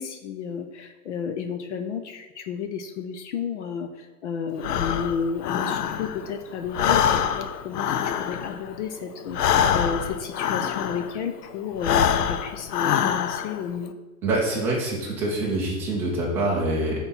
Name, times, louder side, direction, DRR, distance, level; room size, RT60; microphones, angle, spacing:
voice 1, 0.0-13.9, left 6 dB, 50° left, 6 dB, 0.6 m, -32 dB
Breathing, 4.6-6.3 6.6-11.2 11.7-13.6, left 9 dB, 85° left, 0.7 m, -25 dB
voice 2, 14.2-17.0, right 2 dB, 5° right, -5 dB, 0.5 m, -25 dB
6.1 x 4.3 x 5.3 m, 1.2 s
supercardioid pair, 170°, 46 cm